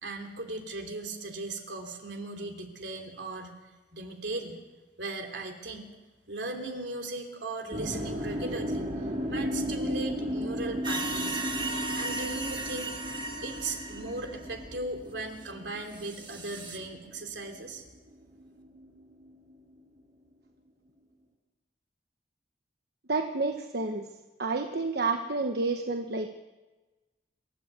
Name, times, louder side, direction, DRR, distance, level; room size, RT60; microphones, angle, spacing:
voice 1, 0.0-3.5 3.9-4.6 5.0-5.9 6.3-8.9 9.3-13.0 13.4-17.8, right 2 dB, 80° right, 4 dB, 3.1 m, -38 dB
sound 1, 7.7-17.8 18.1-19.7, equal, 45° right, 6.3 m, -35 dB
sound 2, 10.8-14.6 15.5-15.6 15.9-16.8, right 3 dB, 25° right, 2.0 m, -36 dB
voice 2, 23.1-24.1 24.4-26.3, right 3 dB, 65° right, 5 dB, 1.1 m, -29 dB
27.0 x 12.5 x 8.2 m, 1.2 s
head